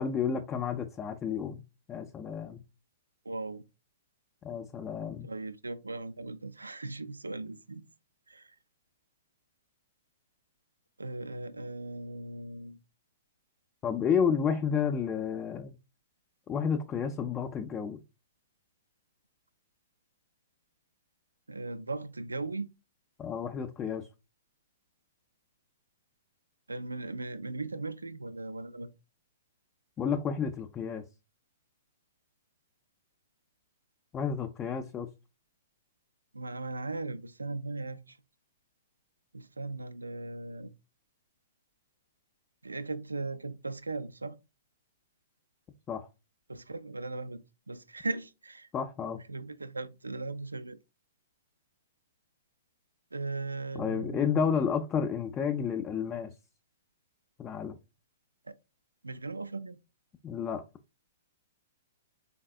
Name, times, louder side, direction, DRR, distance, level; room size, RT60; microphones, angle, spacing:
voice 1, 0.0-1.6 1.9-2.6 4.4-5.3 13.8-15.7 16.5-18.0 23.2-24.1 30.0-31.0 34.1-35.1 45.9-46.1 48.7-49.2 53.7-56.3 57.4-57.8 60.2-60.6, left 7 dB, 20° left, 0.4 m, -31 dB
voice 2, 3.3-3.6 5.2-7.8 8.3-8.5 11.0-12.8 21.5-22.7 26.7-28.9 36.3-38.2 39.3-40.7 42.6-44.4 46.5-48.7 49.3-50.8 53.1-54.7 58.5-58.6 59.0-59.8, right 3 dB, 85° right, 0.4 m, -38 dB
4.0 x 3.5 x 2.2 m
figure-of-eight pair, 115°, 0 cm